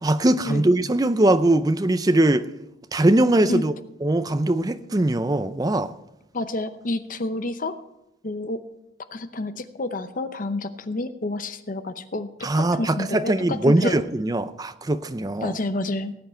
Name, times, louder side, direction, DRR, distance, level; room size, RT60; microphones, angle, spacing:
voice 1, 0.0-2.5 2.9-3.7 4.0-5.9 12.4-15.5, right 1 dB, 20° right, 0.5 m, -21 dB
voice 2, 6.3-7.7 8.2-8.6 9.1-14.0 15.4-16.1, left 2 dB, 45° left, 0.8 m, -29 dB
18.5 x 8.0 x 4.4 m
head